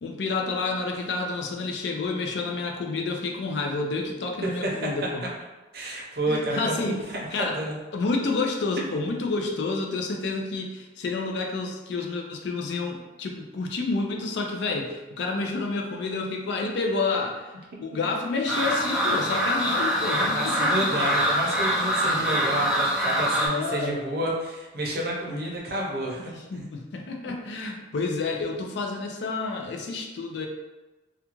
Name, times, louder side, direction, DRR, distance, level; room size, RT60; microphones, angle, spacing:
voice 1, 0.0-5.2 6.3-6.9 7.3-7.6 7.9-17.4 17.8-21.1 23.4-24.0 25.3-25.6 26.3-30.5, left 3 dB, 65° left, 2 dB, 0.4 m, -29 dB
voice 2, 5.7-7.8 20.2-26.3, right 1 dB, 55° right, -3 dB, 0.6 m, -29 dB
sound 1, 18.5-23.5, equal, 5° right, 0.3 m, -24 dB
2.4 x 2.2 x 2.9 m, 1.2 s
head